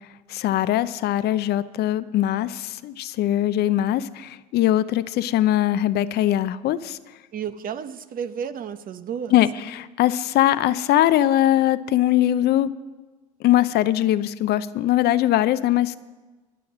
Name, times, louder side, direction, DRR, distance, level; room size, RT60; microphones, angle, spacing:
voice 1, 0.3-7.0 9.3-12.7 13.4-16.0, left 13 dB, 60° left, 14 dB, 0.6 m, -21 dB
voice 2, 7.3-9.4, right 8 dB, 50° right, 12 dB, 0.9 m, -32 dB
20.5 x 7.1 x 6.1 m, 1.2 s
hypercardioid pair, 70°, 19 cm